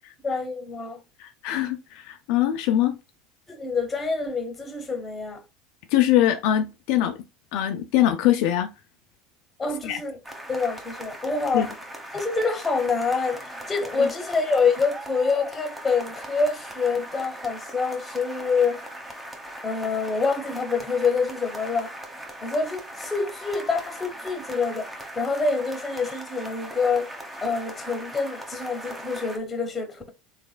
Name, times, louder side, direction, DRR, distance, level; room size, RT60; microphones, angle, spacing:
voice 1, 0.2-1.0 3.5-5.4 9.6-10.2 10.5-11.7 12.1-18.8 19.6-21.9 22.4-27.1 27.4-30.1, left 4 dB, 20° left, 1.1 m, -26 dB
voice 2, 1.2-3.0 5.9-7.2 7.5-8.7 9.8-10.0 11.5-11.7, left 12 dB, 70° left, 0.5 m, -22 dB
sound 1, 10.2-29.4, right 1 dB, 10° right, 1.0 m, -39 dB
3.4 x 3.2 x 2.2 m
supercardioid pair, 100°, 0 cm